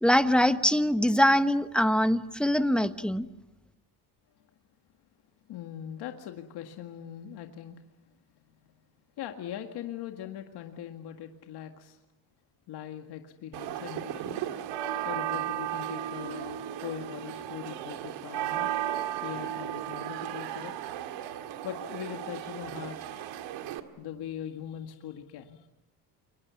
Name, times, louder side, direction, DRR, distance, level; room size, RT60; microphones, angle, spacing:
voice 1, 0.0-3.3, equal, ahead, 11 dB, 1.1 m, -23 dB
voice 2, 5.5-7.8 9.2-12.0 12.7-14.5 15.1-18.7 19.2-20.7 21.6-23.3 24.0-25.7, left 10 dB, 65° left, 5 dB, 2.0 m, -41 dB
sound 1, 13.5-23.8, right 11 dB, 90° right, 2.0 m, -35 dB
29.0 x 23.5 x 7.1 m, 0.96 s
cardioid pair, 115°, 42 cm